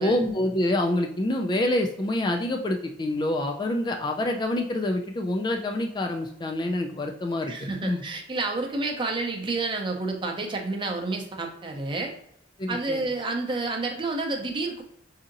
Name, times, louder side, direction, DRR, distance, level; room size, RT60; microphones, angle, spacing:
voice 1, 0.0-8.0 12.6-13.0, left 1 dB, 25° left, 3 dB, 0.3 m, -27 dB
voice 2, 7.5-12.1 12.7-14.8, right 3 dB, 25° right, 2 dB, 0.6 m, -29 dB
4.8 x 2.7 x 2.5 m, 0.69 s
head